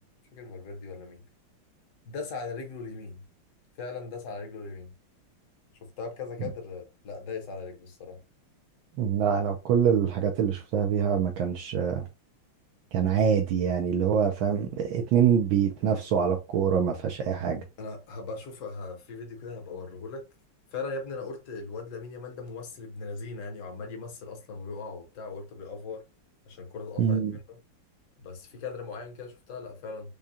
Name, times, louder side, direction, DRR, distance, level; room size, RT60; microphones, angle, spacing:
voice 1, 0.3-1.2 2.1-3.2 3.8-4.9 6.0-8.2 17.8-20.2 20.7-26.0 26.5-27.6 28.2-30.1, left 4 dB, 45° left, 1.1 m, -39 dB
voice 2, 9.0-12.1 12.9-17.6 27.0-27.3, right 7 dB, 75° right, 1.4 m, -25 dB
4.9 x 2.3 x 2.7 m
omnidirectional pair, 2.3 m